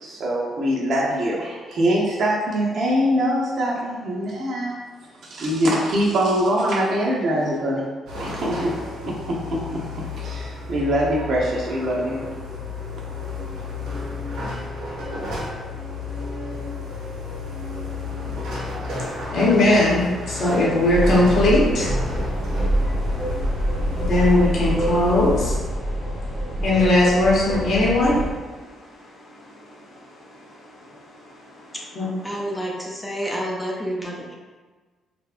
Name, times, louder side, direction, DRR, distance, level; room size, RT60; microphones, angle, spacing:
voice 1, 0.0-4.7 5.2-7.9 8.2-8.7 9.0-9.8 10.2-12.2, equal, 60° right, -4 dB, 0.5 m, -23 dB
sound 1, 8.1-25.6, left 3 dB, 90° right, 0.8 m, -32 dB
voice 2, 18.9-32.1, left 1 dB, 65° left, -5 dB, 0.7 m, -22 dB
sound 2, 20.9-28.3, right 1 dB, 20° right, 0.8 m, -25 dB
voice 3, 32.2-34.3, equal, 10° left, -3 dB, 0.6 m, -29 dB
2.8 x 2.1 x 2.4 m, 1.4 s
cardioid pair, 90°, 0 cm